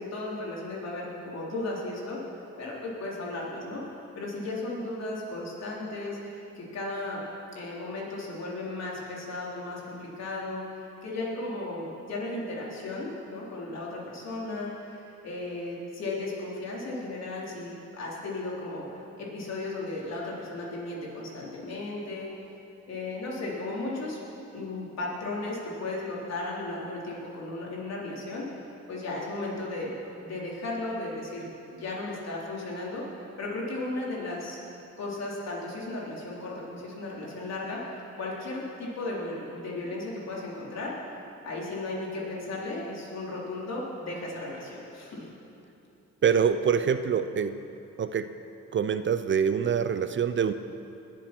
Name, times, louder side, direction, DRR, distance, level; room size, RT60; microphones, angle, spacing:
voice 1, 0.0-2.2 2.6-3.8 4.2-7.2 7.5-22.3 22.9-24.2 24.5-28.5 28.9-29.9 30.2-31.5 31.7-34.6 35.0-40.9 41.4-45.2, left 2 dB, 60° left, -4 dB, 3.8 m, -35 dB
voice 2, 46.2-47.6 48.0-48.3 48.7-50.5, right 7 dB, 40° right, 11 dB, 0.5 m, -25 dB
20.5 x 7.7 x 6.1 m, 2.8 s
cardioid pair, 90°, 30 cm